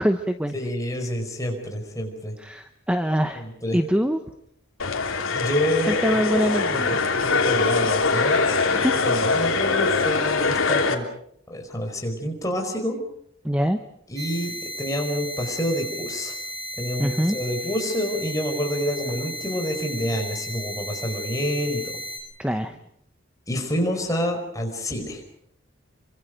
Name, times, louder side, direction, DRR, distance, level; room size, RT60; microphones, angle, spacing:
voice 1, 0.0-0.5 2.4-4.2 5.9-7.2 8.7-8.9 9.3-9.6 13.4-13.8 17.0-17.4 22.4-22.8, equal, 5° right, 8 dB, 0.9 m, -24 dB
voice 2, 0.5-2.3 3.3-3.8 5.3-6.0 6.7-6.9 7.2-11.0 11.5-13.0 14.1-16.4 16.8-21.9 23.5-25.2, equal, 15° left, 2 dB, 5.0 m, -28 dB
sound 1, 4.8-10.9, left 4 dB, 80° left, 3.2 m, -22 dB
sound 2, 14.2-22.2, equal, 50° right, 7.7 m, -35 dB
28.5 x 25.0 x 5.2 m, 0.70 s
head